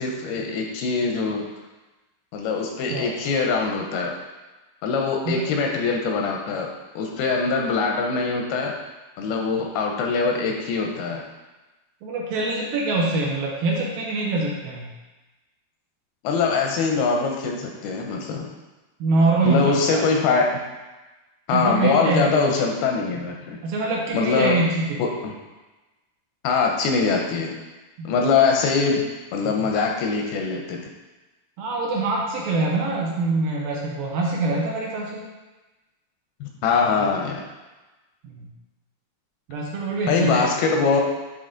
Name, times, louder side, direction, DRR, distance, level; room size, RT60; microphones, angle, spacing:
voice 1, 0.0-1.4 2.3-4.2 4.8-6.7 7.0-8.7 9.2-11.3 16.2-18.5 19.4-20.6 21.5-23.6 24.1-24.6 25.0-25.3 26.4-27.6 28.0-29.0 29.3-30.9 36.4-37.4 40.1-41.0, left 4 dB, 80° left, 1 dB, 2.5 m, -23 dB
voice 2, 12.0-14.9 19.0-20.0 21.5-22.5 23.6-25.0 28.0-28.1 31.6-35.3 38.2-38.5 39.5-40.4, right 2 dB, 70° right, -3 dB, 2.4 m, -24 dB
10.5 x 3.6 x 3.8 m, 1.1 s
omnidirectional pair, 4.7 m